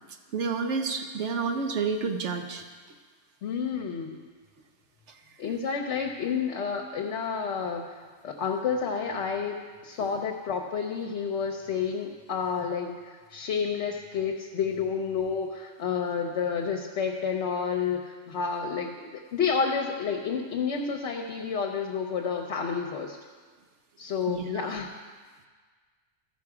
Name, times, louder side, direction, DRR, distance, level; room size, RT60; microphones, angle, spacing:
voice 1, 0.3-2.6 24.3-24.8, right 5 dB, 70° right, 5 dB, 1.0 m, -30 dB
voice 2, 3.4-4.2 5.4-7.8 8.2-9.6 9.8-12.9 13.3-23.2 24.0-24.9, left 6 dB, 65° left, 1 dB, 1.0 m, -30 dB
13.5 x 5.7 x 4.8 m, 1.5 s
omnidirectional pair, 1.3 m